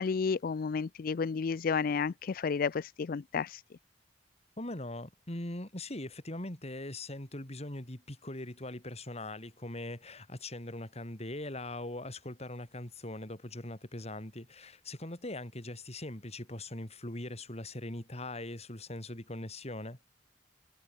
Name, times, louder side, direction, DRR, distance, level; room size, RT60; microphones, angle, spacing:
voice 1, 0.0-3.6, left 5 dB, 55° left, 0.4 m, -31 dB
voice 2, 4.6-20.0, left 1 dB, 35° left, 3.7 m, -41 dB
head